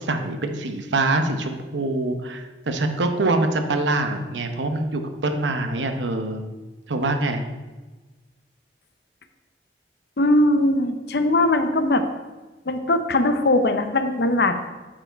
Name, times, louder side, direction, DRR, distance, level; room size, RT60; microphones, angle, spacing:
voice 1, 0.0-6.4 6.9-7.4, right 2 dB, 90° right, 6 dB, 0.8 m, -24 dB
voice 2, 10.2-12.0 12.7-14.7, left 1 dB, 65° left, 8 dB, 0.7 m, -20 dB
8.6 x 4.7 x 4.5 m, 1.2 s
head